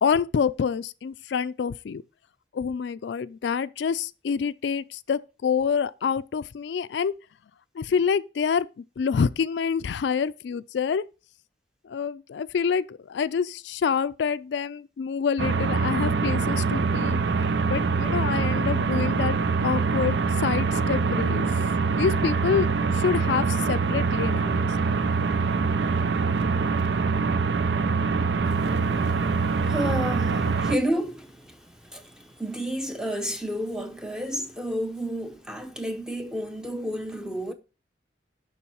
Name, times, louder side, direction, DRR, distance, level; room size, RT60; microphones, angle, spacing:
voice 1, 0.0-2.0 2.5-7.1 7.8-8.7 9.0-11.1 11.8-17.2 17.7-21.5 22.0-25.0 30.3-30.4, left 6 dB, 80° left, 0.4 m, -27 dB
sound 1, 15.4-30.8, right 4 dB, 85° right, 0.5 m, -24 dB
voice 2, 28.4-37.5, equal, 5° right, 0.7 m, -31 dB
7.0 x 5.4 x 4.3 m
head